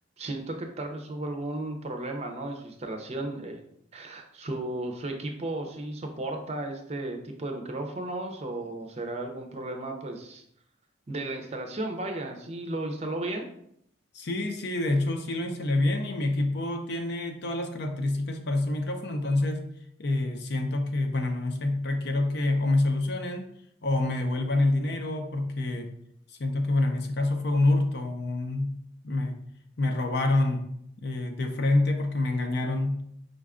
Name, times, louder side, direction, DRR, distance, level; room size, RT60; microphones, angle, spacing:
voice 1, 0.2-3.6 3.9-10.4 11.1-13.4, right 2 dB, 35° right, 4 dB, 0.5 m, -34 dB
voice 2, 14.1-19.6 20.0-23.5 23.8-25.9 26.4-28.7 29.0-29.4 29.8-30.6 31.0-33.0, left 2 dB, 60° left, 5 dB, 0.6 m, -27 dB
5.1 x 2.3 x 3.6 m, 0.71 s
head